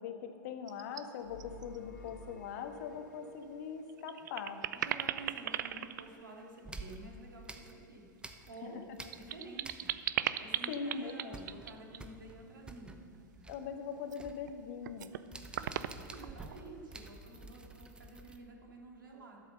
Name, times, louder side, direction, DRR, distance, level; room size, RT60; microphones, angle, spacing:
voice 1, 0.0-4.6 8.6-8.7 10.7-11.4 13.5-15.1, left 6 dB, 55° left, 6 dB, 1.4 m, -41 dB
sound 1, 0.7-1.0 1.4-1.8 2.1-2.2 3.4-3.5 3.9-7.0 8.6-12.1 14.0-14.5 14.8-15.2 15.5-16.6, right 11 dB, 65° right, 0.5 m, -38 dB
sound 2, 1.2-3.7, left 2 dB, 75° left, 2.3 m, -51 dB
voice 2, 4.8-8.1 8.5-8.8 9.1-9.9 10.4-13.4 15.5-19.4, right 2 dB, 80° right, -1 dB, 2.6 m, -50 dB
sound 3, 5.7-6.2 6.6-8.7 8.9-10.2 10.5-10.6 10.9-18.4, right 3 dB, 10° right, 0.8 m, -50 dB
12.0 x 8.0 x 6.8 m, 2.9 s
hypercardioid pair, 100°, 11 cm